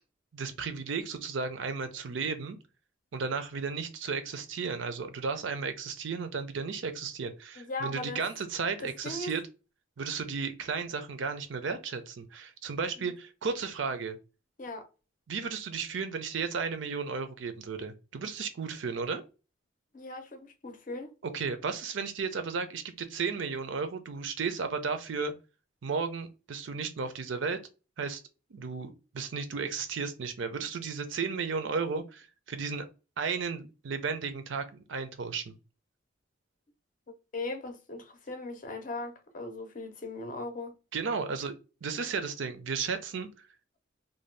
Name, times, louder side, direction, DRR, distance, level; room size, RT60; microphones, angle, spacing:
voice 1, 0.3-2.6 3.1-9.4 10.0-14.2 15.3-19.2 21.2-25.3 25.8-27.6 28.0-28.2 28.5-32.9 33.2-35.6 40.9-41.5 41.8-43.3, right 5 dB, 75° right, 0.5 m, -34 dB
voice 2, 7.6-8.2 8.8-9.3 13.0-13.1 14.6-14.9 19.9-21.1 37.3-40.8, left 2 dB, 40° left, 0.5 m, -38 dB
2.6 x 2.2 x 3.2 m
head